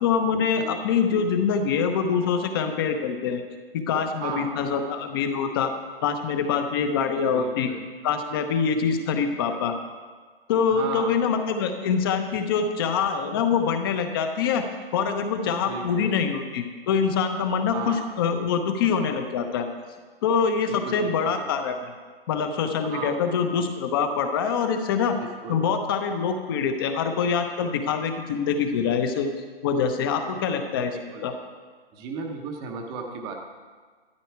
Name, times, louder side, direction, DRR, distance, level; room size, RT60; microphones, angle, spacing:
voice 1, 0.0-3.4 3.9-5.7 6.0-7.7 8.0-9.8 10.5-14.7 14.9-19.7 20.2-21.9 22.3-25.2 25.5-31.3, left 6 dB, 25° left, 7 dB, 0.9 m, -25 dB
voice 2, 4.2-4.5 7.3-7.8 10.7-11.1 15.6-16.2 17.7-18.1 20.6-21.5 22.9-23.2 25.4-25.6 30.9-31.3 31.9-33.3, right 4 dB, 15° right, 2 dB, 0.9 m, -35 dB
13.0 x 12.0 x 4.6 m, 1.5 s
hypercardioid pair, 155°, 31 cm